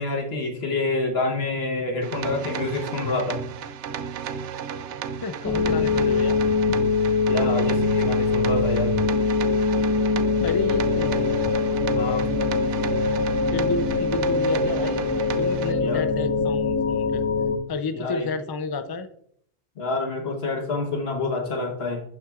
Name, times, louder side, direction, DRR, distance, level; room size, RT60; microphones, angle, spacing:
voice 1, 0.0-3.4 7.3-8.9 12.0-12.3 15.8-16.0 17.9-18.3 19.8-22.0, left 3 dB, 65° left, 3 dB, 1.3 m, -27 dB
sound 1, 2.0-15.7, right 7 dB, 85° right, 0.9 m, -33 dB
voice 2, 5.2-6.4 10.4-11.3 13.5-15.1 15.4-17.3 17.7-19.1, left 4 dB, 35° left, 10 dB, 0.3 m, -30 dB
sound 2, 5.4-17.6, left 4 dB, 15° left, 0.8 m, -23 dB
12.0 x 5.8 x 2.4 m, 0.66 s
omnidirectional pair, 1.1 m